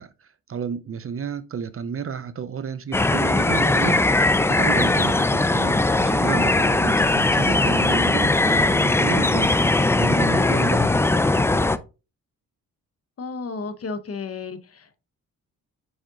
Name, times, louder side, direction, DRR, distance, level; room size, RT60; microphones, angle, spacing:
voice 1, 0.0-9.5 10.0-11.3, right 7 dB, 40° right, 0.6 m, -31 dB
sound 1, 2.9-11.8, left 2 dB, 10° left, 0.3 m, -19 dB
voice 2, 13.2-14.9, left 4 dB, 45° left, 0.9 m, -33 dB
5.1 x 5.0 x 3.8 m
cardioid pair, 100°, 34 cm